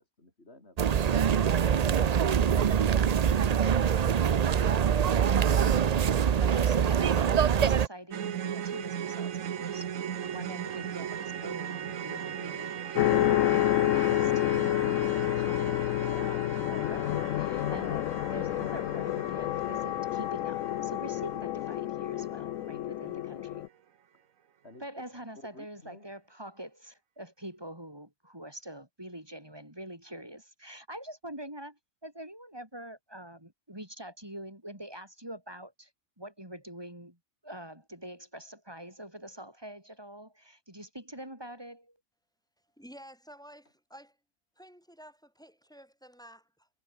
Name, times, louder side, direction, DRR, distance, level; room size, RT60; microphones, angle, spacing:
sound 1, 0.8-7.9, right 8 dB, 50° right, 0.4 m, -24 dB
voice 1, 6.2-9.9 10.2-23.6 24.8-35.9 36.2-37.2 37.4-42.0, right 1 dB, 20° right, 4.9 m, -45 dB
sound 2, 8.1-22.3 22.6-22.8 23.2-23.3, right 9 dB, 90° right, 1.5 m, -39 dB
sound 3, 12.9-23.7, left 14 dB, 80° left, 1.0 m, -29 dB
voice 2, 25.3-26.1, left 2 dB, 50° left, 5.7 m, -55 dB
voice 3, 42.8-44.2 44.6-46.7, equal, 5° left, 3.4 m, -51 dB
omnidirectional pair, 1.4 m